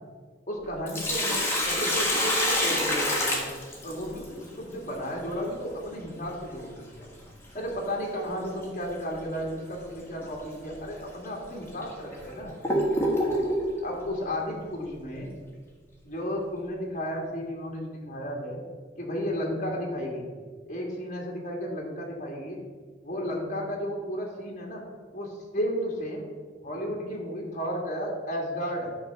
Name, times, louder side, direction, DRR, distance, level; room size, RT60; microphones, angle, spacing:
voice 1, 0.5-3.5 3.8-7.1 7.5-12.5 13.8-15.3 16.0-18.6 19.0-20.3 20.7-22.6 23.0-24.9 25.1-26.2 26.6-28.9, equal, 40° left, 0 dB, 1.8 m, -33 dB
Sink (filling or washing), 0.6-4.2 6.6-6.7 8.6-8.8 9.3-9.4 10.2-10.4 11.0-11.1 11.8-13.7, left 1 dB, 15° left, 1.4 m, -26 dB
10.5 x 3.5 x 6.5 m, 1.5 s
head